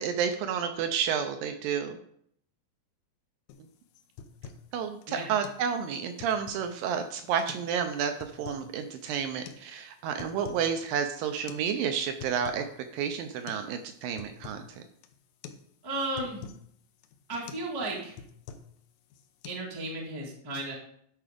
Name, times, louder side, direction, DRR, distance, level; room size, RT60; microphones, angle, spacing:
voice 1, 0.0-2.0 4.7-12.6 12.9-14.8, right 7 dB, 80° right, 7 dB, 2.2 m, -30 dB
sound 1, 3.5-3.6 4.0-4.7 5.0-5.1 5.4-5.6 6.0-6.8 7.3-7.7 8.0-8.7 9.5-9.6 10.0-10.7 11.0-11.1 11.5-11.7 12.0-12.7 13.0-13.1 13.5-13.7 14.0-14.7 15.0-15.2 15.4-15.6 15.9-16.6 17.0-17.2 17.5-17.7 18.0-18.8 19.1-19.5, left 6 dB, 80° left, 1.7 m, -46 dB
voice 2, 15.8-16.5 17.3-18.1 19.4-20.7, right 2 dB, 15° right, -2 dB, 0.8 m, -34 dB
11.0 x 4.7 x 5.0 m, 0.67 s
omnidirectional pair, 4.4 m